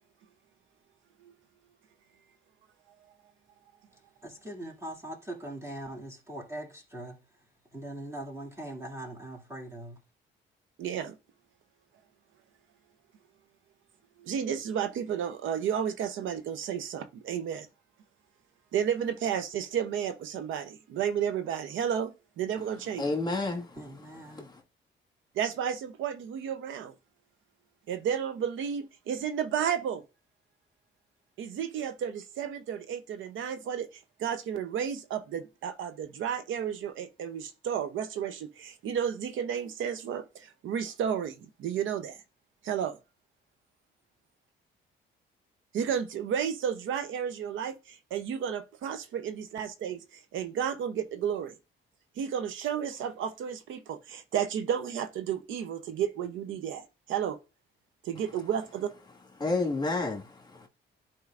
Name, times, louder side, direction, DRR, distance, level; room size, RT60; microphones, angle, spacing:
voice 1, 4.2-7.2 7.7-10.0 23.7-24.5, right 1 dB, 15° right, 2.3 m, -41 dB
voice 2, 10.8-11.2 14.2-17.7 18.7-23.0 25.4-26.9 27.9-30.0 31.4-42.2 42.6-43.0 45.7-51.5 52.2-57.4 58.0-58.9, right 8 dB, 75° right, 0.7 m, -32 dB
voice 3, 23.0-23.8 24.3-24.5 59.4-60.7, left 3 dB, 20° left, 1.7 m, -30 dB
10.5 x 4.5 x 2.5 m
cardioid pair, 90°, 20 cm